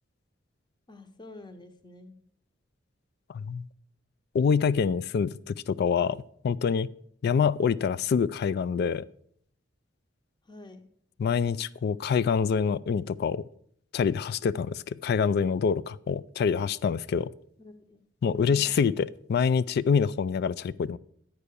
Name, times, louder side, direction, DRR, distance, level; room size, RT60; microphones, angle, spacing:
voice 1, 0.9-2.2 10.5-10.9 17.6-18.0 18.4-18.7, left 2 dB, 25° left, 0.8 m, -48 dB
voice 2, 3.3-3.7 4.3-6.9 7.2-9.0 11.2-13.4 13.9-17.3 18.2-21.0, left 6 dB, 55° left, 0.3 m, -26 dB
9.9 x 4.7 x 6.7 m
head